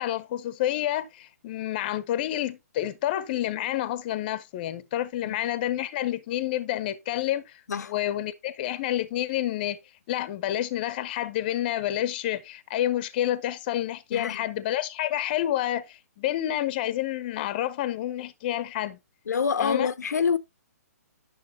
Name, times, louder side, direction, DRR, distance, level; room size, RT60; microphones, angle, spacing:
voice 1, 0.0-7.6 7.9-9.8 10.1-19.0 19.6-19.9, left 13 dB, 30° left, 0.7 m, -29 dB
voice 2, 19.3-20.4, left 6 dB, 80° left, 0.6 m, -26 dB
9.6 x 6.3 x 2.8 m
hypercardioid pair, 155°, 9 cm